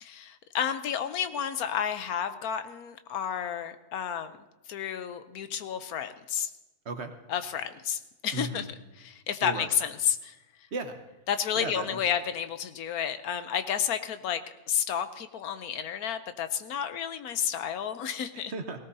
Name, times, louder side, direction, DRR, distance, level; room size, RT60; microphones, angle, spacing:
voice 1, 0.0-6.5 7.3-8.7 9.0-10.4 11.3-18.5, left 8 dB, 85° left, 10 dB, 1.2 m, -31 dB
voice 2, 6.8-7.2 8.3-8.7 9.4-9.7 10.7-11.0 11.5-12.0 18.5-18.8, right 3 dB, 50° right, 7 dB, 1.2 m, -35 dB
18.5 x 17.0 x 2.7 m, 1.0 s
omnidirectional pair, 1.5 m